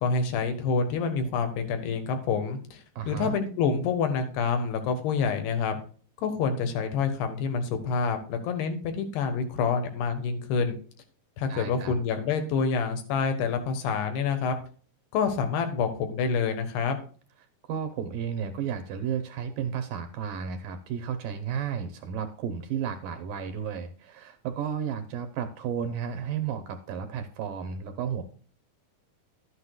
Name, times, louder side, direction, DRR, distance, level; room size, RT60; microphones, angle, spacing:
voice 1, 0.0-5.8 6.2-10.8 11.4-14.6 15.1-17.0, left 5 dB, 80° left, 7 dB, 3.4 m, -27 dB
voice 2, 3.0-3.3 11.5-11.9 17.6-28.2, right 8 dB, 75° right, 9 dB, 2.2 m, -33 dB
12.0 x 9.7 x 2.3 m, 0.42 s
omnidirectional pair, 4.6 m